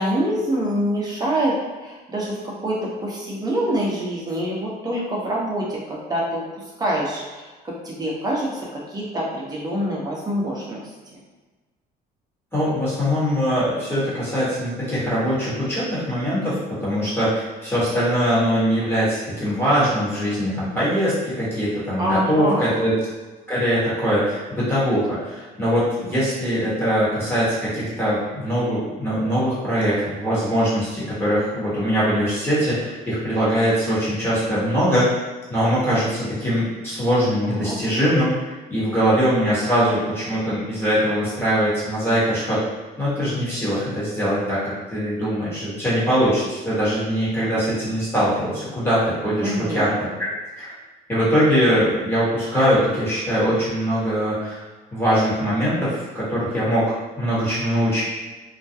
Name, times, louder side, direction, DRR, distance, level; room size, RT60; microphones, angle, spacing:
voice 1, 0.0-1.6 1.8-6.4 6.8-10.8 22.0-22.8 37.4-37.8 49.4-49.8, right 1 dB, 25° right, -4 dB, 0.7 m, -25 dB
voice 2, 12.5-22.9 23.5-35.1 35.5-42.6 43.0-50.3 50.6-50.7 51.1-56.8 57.2-58.0, equal, 15° left, -10 dB, 1.1 m, -22 dB
2.3 x 2.1 x 2.7 m, 1.3 s
cardioid pair, 110°, 17 cm